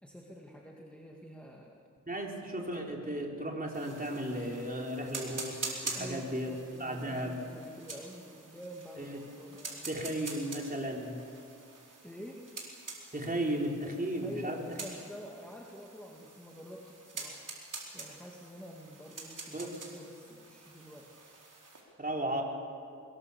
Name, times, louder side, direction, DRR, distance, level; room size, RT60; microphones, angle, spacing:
voice 1, 0.0-1.8 5.9-10.1 12.0-12.4 14.2-17.4 17.9-21.1, equal, 5° left, -1 dB, 2.2 m, -48 dB
voice 2, 2.1-6.5 6.8-7.4 9.0-9.2 9.8-11.2 13.1-14.6 19.5-19.8 22.0-22.4, right 1 dB, 25° right, 0 dB, 3.9 m, -35 dB
sound 1, 3.7-21.8, right 3 dB, 75° right, 4.6 m, -46 dB
23.5 x 21.0 x 7.1 m, 2.4 s
wide cardioid pair, 75°, 32 cm